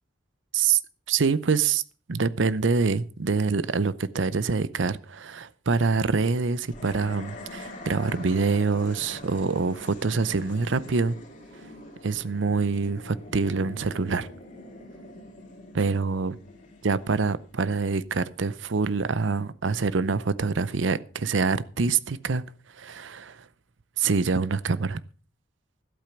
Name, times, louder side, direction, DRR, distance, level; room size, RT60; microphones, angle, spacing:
voice 1, 1.1-1.8 2.1-11.2 12.0-14.3 15.7-16.4 16.8-22.4 22.8-23.5 24.0-25.0, right 4 dB, 80° right, 0.7 m, -25 dB
sound 1, 6.7-18.1, left 1 dB, 40° left, 2.7 m, -44 dB
12.5 x 8.4 x 5.9 m
head